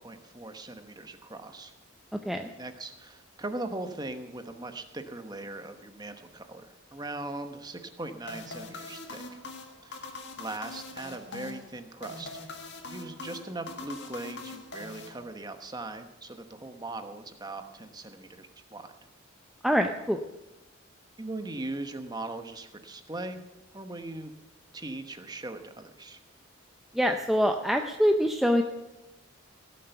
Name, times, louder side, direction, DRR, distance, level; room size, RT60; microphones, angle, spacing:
voice 1, 0.0-1.7 2.5-9.2 9.8-12.4 12.9-18.9 21.2-23.4 23.7-24.3 24.7-26.2, right 2 dB, 20° right, 7 dB, 1.0 m, -40 dB
sound 1, 8.3-15.7, left 3 dB, 55° left, 1.8 m, -43 dB
voice 2, 19.6-20.2 26.9-28.6, equal, ahead, 4 dB, 0.5 m, -24 dB
17.0 x 7.8 x 6.9 m, 1.0 s
head